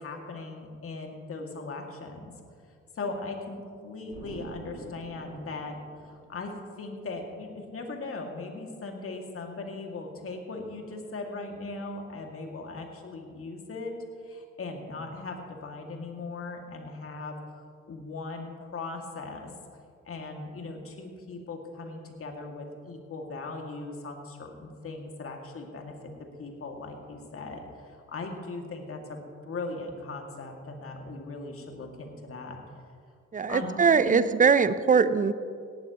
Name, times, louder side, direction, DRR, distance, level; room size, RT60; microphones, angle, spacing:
voice 1, 0.0-2.3 2.9-14.0 14.2-17.4 17.9-19.5 20.1-25.9 26.4-32.6 33.5-34.2, left 3 dB, 40° left, 2 dB, 2.4 m, -39 dB
Explosion, 4.1-6.8, right 2 dB, 75° right, 2.7 m, -46 dB
voice 2, 33.3-35.3, right 5 dB, 20° right, 14 dB, 0.7 m, -21 dB
18.0 x 14.5 x 3.1 m, 2.2 s
hypercardioid pair, 50°, 36 cm